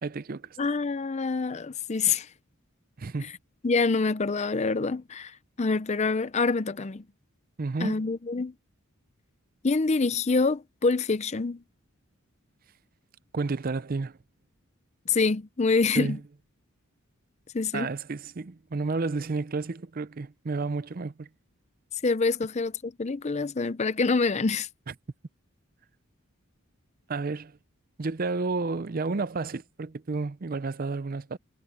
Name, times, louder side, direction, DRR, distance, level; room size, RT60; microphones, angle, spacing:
voice 1, 0.0-0.5 3.0-3.3 7.6-8.0 13.3-14.1 16.0-16.2 17.7-21.3 27.1-27.5 28.0-31.4, right 3 dB, 40° right, 0.5 m, -31 dB
voice 2, 0.6-2.3 3.2-3.4 3.6-7.0 7.8-8.5 9.6-11.6 15.1-16.2 17.5-17.9 22.0-24.7, left 4 dB, 30° left, 0.5 m, -26 dB
head